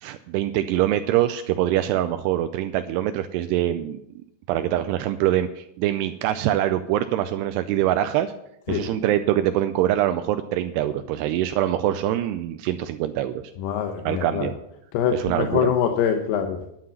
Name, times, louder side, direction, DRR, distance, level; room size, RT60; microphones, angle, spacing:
voice 1, 0.0-4.0 4.5-8.3 8.7-13.4 14.0-14.5 15.1-15.7, right 12 dB, 80° right, 9 dB, 2.6 m, -24 dB
voice 2, 13.6-14.5 14.9-16.7, left 8 dB, 75° left, 5 dB, 2.8 m, -24 dB
11.5 x 7.7 x 7.1 m, 0.79 s
omnidirectional pair, 4.9 m